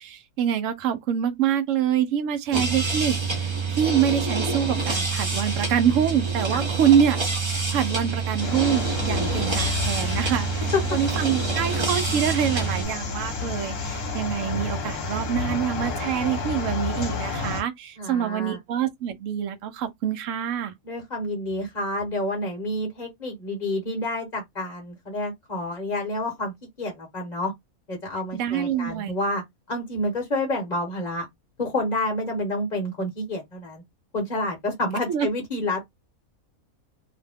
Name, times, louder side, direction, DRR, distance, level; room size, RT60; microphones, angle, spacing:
voice 1, 0.0-20.8 28.3-29.1 35.1-35.3, right 9 dB, 70° right, 0.9 m, -25 dB
sound 1, 2.5-12.8, right 4 dB, 25° right, 0.7 m, -27 dB
sound 2, 8.4-17.6, left 4 dB, 60° left, 1.3 m, -30 dB
voice 2, 18.0-18.6 20.8-27.5 27.9-29.4 29.7-31.3 31.6-33.8 34.1-35.8, left 1 dB, 35° left, 1.0 m, -29 dB
2.8 x 2.2 x 3.4 m
omnidirectional pair, 1.5 m